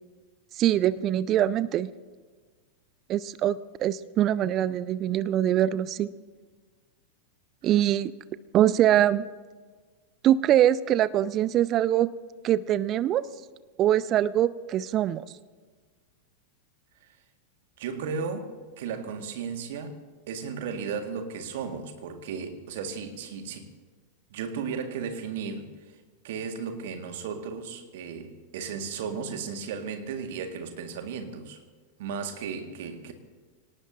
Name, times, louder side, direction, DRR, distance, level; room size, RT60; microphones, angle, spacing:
voice 1, 0.6-1.9 3.1-6.1 7.6-8.1 8.5-9.2 10.2-12.1 12.4-13.2 13.8-15.2, right 12 dB, 35° right, 0.5 m, -23 dB
voice 2, 17.8-23.7 24.3-26.0 26.2-31.6 32.0-33.1, right 6 dB, 55° right, 1.9 m, -35 dB
25.0 x 18.5 x 2.8 m
figure-of-eight pair, 90°, 0 cm